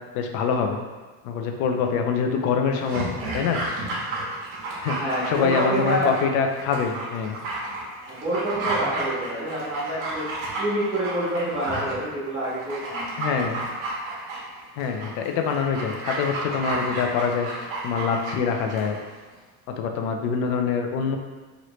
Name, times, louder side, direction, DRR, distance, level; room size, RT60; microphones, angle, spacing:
voice 1, 0.1-0.8 1.2-3.6 4.8-5.0 5.3-7.4 13.2-13.6 14.8-19.0 19.8-21.2, left 6 dB, 70° left, 4 dB, 0.5 m, -25 dB
Dog, 2.7-19.0 19.3-19.4, right 2 dB, 60° right, 1.0 m, -32 dB
voice 2, 5.0-6.1 8.1-10.3 10.6-13.2, right 1 dB, 15° right, -11 dB, 1.3 m, -27 dB
3.1 x 2.6 x 3.1 m, 1.3 s
cardioid pair, 150°, 37 cm